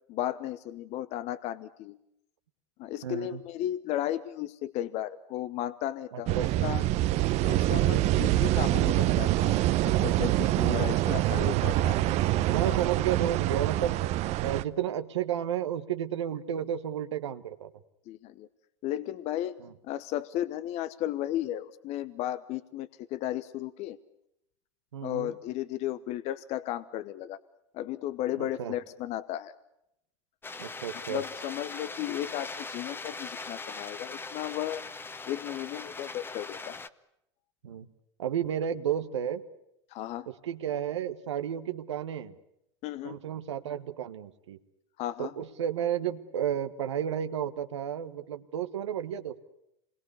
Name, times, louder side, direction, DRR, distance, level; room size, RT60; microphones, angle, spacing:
voice 1, 0.1-2.0 2.8-6.4 6.6-6.8 7.4-12.0 12.6-12.8 18.1-18.5 18.8-19.6 19.8-24.0 25.0-27.4 27.7-29.5 31.1-34.8 35.3-36.8 39.9-40.3 42.8-43.2 45.0-45.3, left 13 dB, 50° left, 15 dB, 1.0 m, -34 dB
voice 2, 3.0-3.4 6.1-6.6 10.6-10.8 12.4-14.0 14.4-17.7 19.6-19.7 24.9-25.3 28.4-28.7 30.6-31.2 37.6-37.9 38.2-39.4 40.3-42.4 43.0-44.6 45.2-49.4, right 10 dB, 85° right, 8 dB, 1.4 m, -32 dB
sound 1, 6.3-14.6, right 15 dB, 50° right, 0.9 m, -25 dB
sound 2, 30.4-36.9, left 3 dB, 15° left, 1.1 m, -40 dB
27.0 x 21.5 x 8.3 m, 0.80 s
hypercardioid pair, 95°, 15 cm